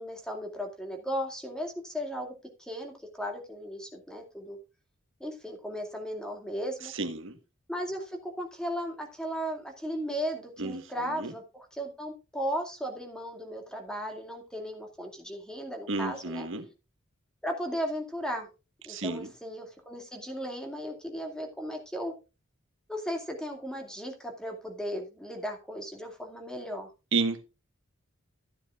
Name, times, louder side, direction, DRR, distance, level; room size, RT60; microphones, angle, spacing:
voice 1, 0.0-2.3 2.6-4.6 5.2-6.9 7.7-16.5 17.4-18.5 18.8-22.1 22.9-26.9, equal, 5° left, 2.4 m, -36 dB
voice 2, 6.8-7.4 10.6-11.3 15.9-16.7 18.9-19.3 27.1-27.4, right 3 dB, 65° right, 1.4 m, -32 dB
14.5 x 9.5 x 2.5 m
head